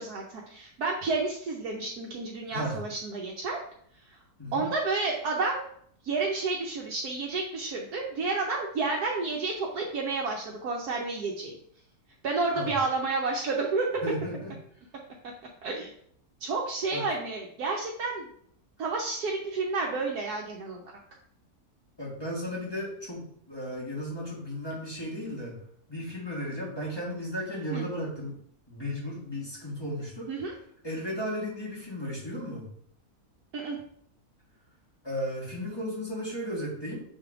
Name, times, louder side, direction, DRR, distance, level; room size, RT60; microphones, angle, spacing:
voice 1, 0.0-3.6 4.5-5.7 6.0-11.5 12.2-13.9 15.6-15.9 16.4-18.3 18.8-20.8 27.7-27.8 30.3-30.5 33.5-33.8, right 3 dB, 80° right, -1 dB, 1.4 m, -30 dB
voice 2, 2.5-2.8 4.4-4.7 12.6-12.7 14.0-14.5 16.9-17.0 22.0-25.6 25.9-28.4 28.7-30.3 30.8-32.7 35.0-37.0, equal, 15° left, -4 dB, 2.0 m, -35 dB
6.4 x 3.6 x 4.8 m, 0.66 s
omnidirectional pair, 1.6 m